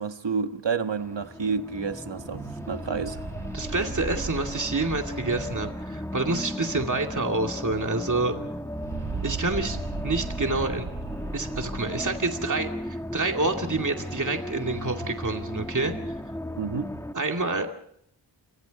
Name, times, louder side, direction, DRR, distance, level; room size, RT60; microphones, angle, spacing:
voice 1, 0.0-3.3 16.6-16.9, right 5 dB, 65° right, 1.5 m, -30 dB
sound 1, 1.0-17.1, left 1 dB, 5° left, 1.3 m, -36 dB
sound 2, 2.1-7.4 7.6-7.7 8.0-12.3, right 3 dB, 80° right, 5.8 m, -37 dB
voice 2, 3.5-8.3 9.2-10.9 11.3-16.2 17.1-17.7, right 3 dB, 40° right, 2.5 m, -28 dB
29.0 x 25.0 x 4.2 m
wide cardioid pair, 80°, 47 cm